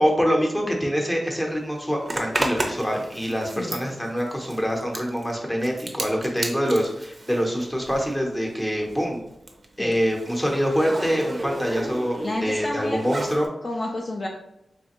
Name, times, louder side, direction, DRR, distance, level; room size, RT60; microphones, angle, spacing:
voice 1, 0.0-9.2 9.8-13.5, equal, 10° left, 0 dB, 0.8 m, -25 dB
Zipper (clothing), 2.1-8.2 8.5-13.5, right 2 dB, 30° right, 0.5 m, -33 dB
voice 2, 12.2-13.0 13.6-14.3, left 1 dB, 35° left, 0 dB, 0.4 m, -29 dB
3.4 x 3.2 x 3.0 m, 0.83 s
wide cardioid pair, 110°, 0 cm